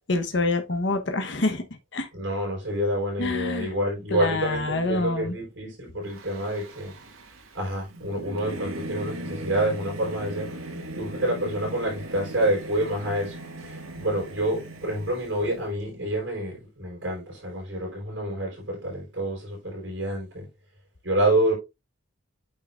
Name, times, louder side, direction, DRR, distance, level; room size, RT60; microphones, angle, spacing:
voice 1, 0.1-1.6 1.9-2.1 3.2-3.7 4.1-5.3, left 2 dB, 55° left, 1.0 m, -26 dB
voice 2, 2.1-6.9 7.5-20.5 21.0-21.5, right 1 dB, 60° right, 4.5 m, -28 dB
Singing / Musical instrument, 6.1-15.6, right 1 dB, 80° right, 1.9 m, -38 dB
8.7 x 5.6 x 2.4 m
head